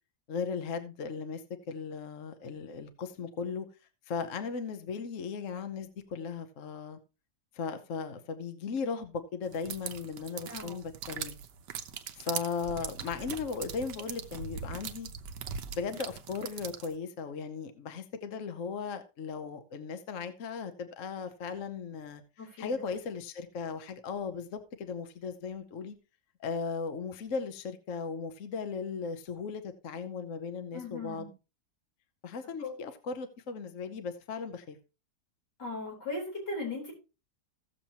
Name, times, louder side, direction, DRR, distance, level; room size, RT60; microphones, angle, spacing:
voice 1, 0.3-1.4 1.7-3.7 4.1-7.0 7.5-11.4 12.1-15.1 15.7-22.2 22.6-26.0 26.4-31.3 32.2-34.8, left 5 dB, 55° left, 1.1 m, -37 dB
sound 1, 9.5-16.9, right 7 dB, 85° right, 1.4 m, -41 dB
voice 2, 22.4-22.8 30.7-31.3 32.6-32.8 35.6-36.9, left 2 dB, 85° left, 4.6 m, -38 dB
16.0 x 7.0 x 2.9 m
omnidirectional pair, 1.8 m